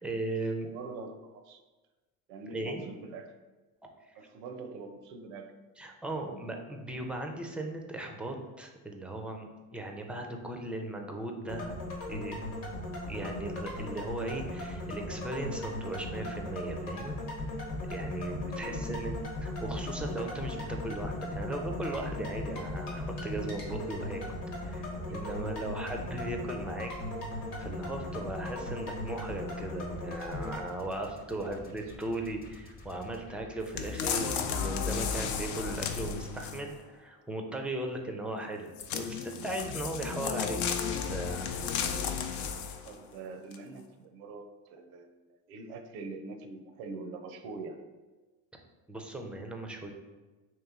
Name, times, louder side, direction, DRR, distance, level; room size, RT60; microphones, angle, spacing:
voice 1, 0.0-0.7 2.5-2.8 4.0-4.2 5.8-11.7 12.1-12.4 13.1-17.2 17.9-19.2 19.4-24.2 24.6-26.9 27.6-41.5 48.9-49.9, right 2 dB, 5° right, 2 dB, 0.3 m, -37 dB
voice 2, 0.6-1.6 2.3-3.3 4.2-5.5 18.5-19.0 25.1-25.8 31.0-31.8 42.8-47.8, right 3 dB, 80° right, 7 dB, 0.6 m, -44 dB
sound 1, 11.5-30.6, left 1 dB, 85° left, 1.1 m, -38 dB
sound 2, 17.3-35.6, left 2 dB, 20° left, 0.7 m, -49 dB
sound 3, 33.8-36.8 38.8-42.9 43.5-43.6, left 6 dB, 70° left, 0.6 m, -33 dB
3.1 x 3.0 x 3.6 m, 1.2 s
supercardioid pair, 80°, 43 cm